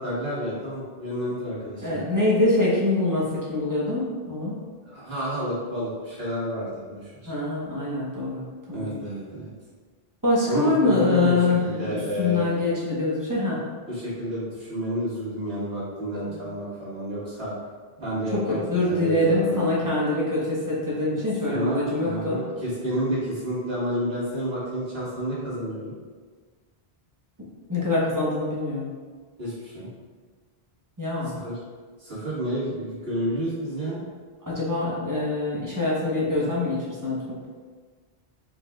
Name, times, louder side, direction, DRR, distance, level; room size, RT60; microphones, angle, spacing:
voice 1, 0.0-2.0 4.9-7.3 8.7-9.5 10.5-12.5 13.9-17.5 18.0-19.7 21.1-21.2 21.5-25.9 29.4-29.9 31.3-31.6 32.0-34.0, equal, 70° right, -9 dB, 2.0 m, -30 dB
voice 2, 1.8-4.6 7.2-8.4 8.7-8.9 10.2-13.6 16.3-16.4 18.3-22.4 27.7-28.9 31.0-31.3 34.4-37.4, left 2 dB, 20° right, -7 dB, 1.1 m, -24 dB
4.7 x 4.6 x 2.4 m, 1.5 s
omnidirectional pair, 1.0 m